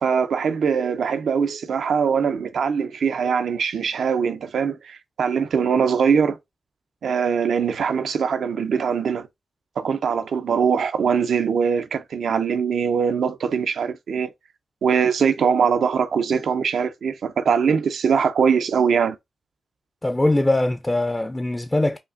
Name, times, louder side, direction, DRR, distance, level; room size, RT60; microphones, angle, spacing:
voice 1, 0.0-6.4 7.0-9.3 9.8-14.3 14.8-19.2, right 6 dB, 80° right, 0.5 m, -22 dB
voice 2, 20.0-22.0, left 2 dB, 20° left, 0.4 m, -21 dB
5.1 x 2.5 x 2.5 m
cardioid pair, 60°, 0 cm